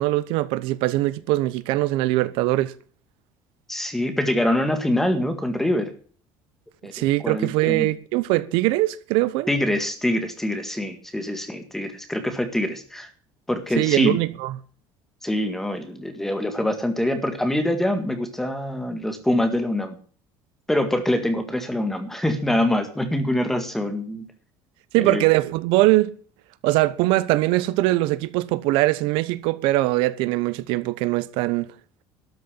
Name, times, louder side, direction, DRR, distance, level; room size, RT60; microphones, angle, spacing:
voice 1, 0.0-2.7 6.9-9.5 13.8-14.5 24.9-26.1 26.6-31.7, right 18 dB, 75° right, 0.9 m, -21 dB
voice 2, 3.7-5.9 6.8-7.9 9.5-13.1 13.5-14.2 15.2-20.0 20.7-24.3 25.0-25.2, left 1 dB, 5° left, 1.8 m, -24 dB
13.0 x 6.8 x 9.9 m
cardioid pair, 180°, 9 cm